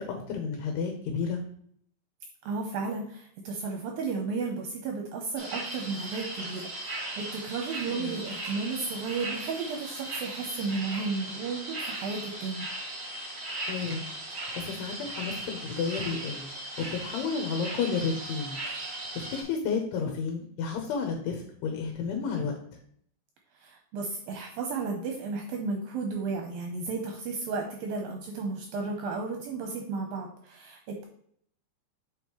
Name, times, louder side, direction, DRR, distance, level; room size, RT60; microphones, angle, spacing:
voice 1, 0.0-1.4 7.9-8.2 13.7-14.0 14.3-16.5 16.9-18.6 19.2-22.5, left 5 dB, 75° left, 3 dB, 3.0 m, -32 dB
voice 2, 2.5-12.7 23.6-31.0, right 4 dB, 75° right, 2 dB, 2.2 m, -33 dB
sound 1, 5.4-19.4, right 1 dB, 50° right, 1.1 m, -38 dB
7.0 x 5.3 x 3.1 m, 0.64 s
omnidirectional pair, 4.9 m